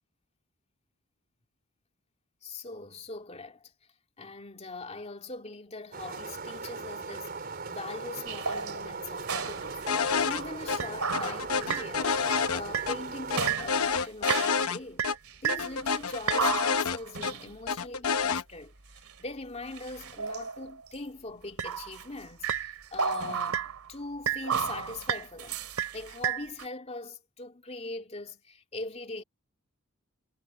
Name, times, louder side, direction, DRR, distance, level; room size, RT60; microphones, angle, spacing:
voice 1, 2.4-3.7 4.2-12.2 12.5-15.1 15.4-25.6 25.9-29.2, left 3 dB, 30° left, 2.5 m, -41 dB
sound 1, 5.9-13.5, right 4 dB, 45° right, 4.2 m, -39 dB
sound 2, 8.3-9.9 10.4-10.5 10.8-11.9 12.3-12.5 12.7-13.1 13.4-14.7 15.0-17.5 19.0-19.1 19.7-20.9 21.6-22.1 22.4-23.9 24.3-26.7, right 7 dB, 80° right, 2.3 m, -33 dB
sound 3, 9.9-10.4 10.7-10.8 11.1-13.0 13.3-14.8 15.0-15.2 15.5-17.3 17.7-18.4, left 5 dB, 75° left, 0.9 m, -28 dB
head